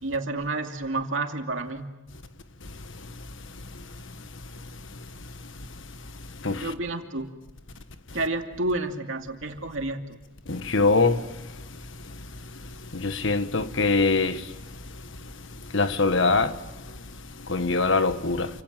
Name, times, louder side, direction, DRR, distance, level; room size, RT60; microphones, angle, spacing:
voice 1, 0.0-1.9 6.6-7.3 8.1-10.2, right 2 dB, 65° right, 2.7 m, -30 dB
voice 2, 10.5-11.2 12.9-14.4 15.7-16.5 17.5-18.5, left 3 dB, 60° left, 1.5 m, -23 dB
29.0 x 26.5 x 7.6 m
head